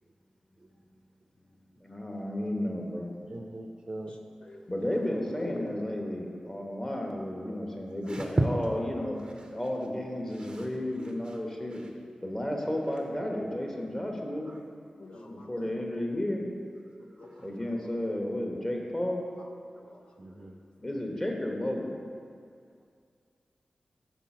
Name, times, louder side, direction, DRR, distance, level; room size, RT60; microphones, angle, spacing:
voice 1, 1.8-3.1 4.7-9.2 9.5-11.8 12.2-14.5 15.2-16.4 17.4-19.2 20.8-22.0, left 1 dB, 25° left, 1 dB, 1.2 m, -32 dB
voice 2, 3.3-4.2 8.1-8.5 10.4-10.7 20.2-20.5, right 2 dB, 35° right, 3 dB, 0.5 m, -32 dB
voice 3, 4.1-5.0 5.4-6.0 15.0-16.1 17.0-18.0 19.4-19.5 19.7-20.6, left 1 dB, 55° left, 1 dB, 0.8 m, -45 dB
6.0 x 4.1 x 5.9 m, 2.3 s
cardioid pair, 45°, 2 cm